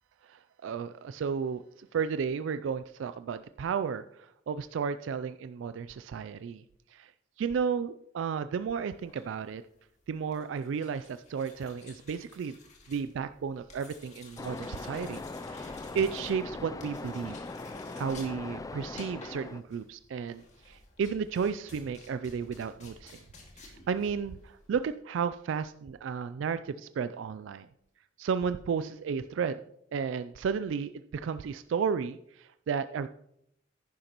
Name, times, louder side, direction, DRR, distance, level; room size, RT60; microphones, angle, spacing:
voice 1, 0.2-6.6 6.9-7.1 7.4-9.6 10.1-12.6 12.9-15.2 15.5-17.4 17.9-23.2 23.6-27.7 28.2-29.6 29.9-33.1, right 6 dB, 70° right, 12 dB, 0.3 m, -33 dB
sound 1, 8.9-24.9, left 3 dB, 40° left, 2.1 m, -54 dB
Waves surf, 14.4-19.6, left 3 dB, 20° left, 0.3 m, -40 dB
10.5 x 10.5 x 3.0 m, 0.76 s
head